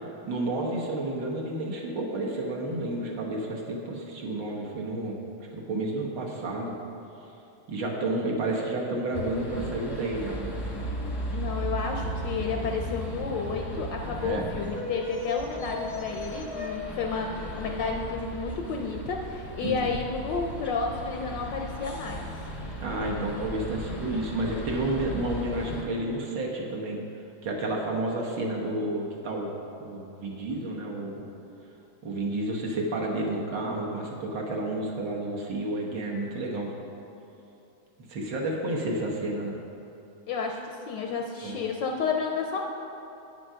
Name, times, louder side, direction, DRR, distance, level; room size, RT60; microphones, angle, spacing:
voice 1, 0.3-5.2 5.5-6.8 7.7-10.6 14.2-14.4 19.6-20.0 22.8-27.0 27.4-29.5 29.8-31.2 32.0-36.7 38.0-39.6 41.4-41.6, right 2 dB, 60° right, -1 dB, 1.7 m, -31 dB
sound 1, 9.1-25.8, equal, 20° left, 0.6 m, -36 dB
voice 2, 11.3-22.3 40.3-42.6, left 4 dB, 70° left, 2 dB, 1.1 m, -31 dB
8.8 x 7.6 x 5.6 m, 2.9 s
omnidirectional pair, 2.4 m